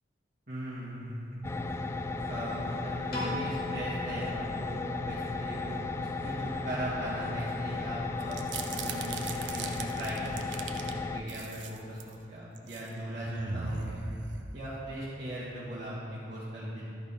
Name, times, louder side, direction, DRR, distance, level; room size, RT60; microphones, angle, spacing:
voice 1, 0.5-1.6 2.3-14.0 14.5-16.8, right 1 dB, 45° right, -10 dB, 1.9 m, -38 dB
sound 1, 1.4-11.2, left 3 dB, 15° left, 0.3 m, -35 dB
Piano, 3.1-5.4, left 1 dB, 55° left, 2.3 m, -40 dB
sound 2, 8.2-10.9 11.3-12.1 12.6-12.9 13.2-14.9, right 5 dB, 65° right, 0.6 m, -39 dB
12.5 x 5.2 x 4.9 m, 2.5 s
head